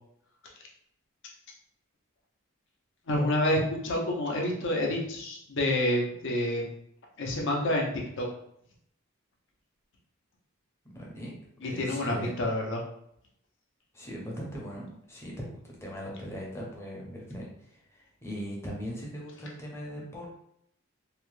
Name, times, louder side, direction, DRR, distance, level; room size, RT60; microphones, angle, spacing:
voice 1, 3.1-6.7 7.2-8.3 11.6-12.8, left 1 dB, 60° left, -1 dB, 0.7 m, -28 dB
voice 2, 10.9-11.3 11.6-12.3 13.9-20.3, equal, 10° left, -3 dB, 0.7 m, -40 dB
2.8 x 2.1 x 3.1 m, 0.72 s
head